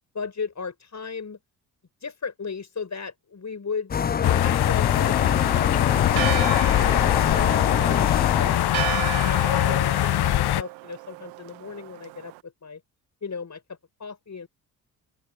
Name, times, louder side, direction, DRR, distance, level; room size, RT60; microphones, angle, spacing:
voice 1, 0.1-1.4 2.0-5.5 5.9-8.6 9.2-12.8 13.2-14.5, left 5 dB, 35° left, 6.2 m, -36 dB
sound 1, 3.9-8.7, left 7 dB, 20° left, 0.4 m, -25 dB
sound 2, 4.2-10.6, left 14 dB, 55° left, 0.9 m, -22 dB
Church bell, 6.1-12.4, right 21 dB, 80° right, 1.9 m, -34 dB
open air
hypercardioid pair, 50°, 46 cm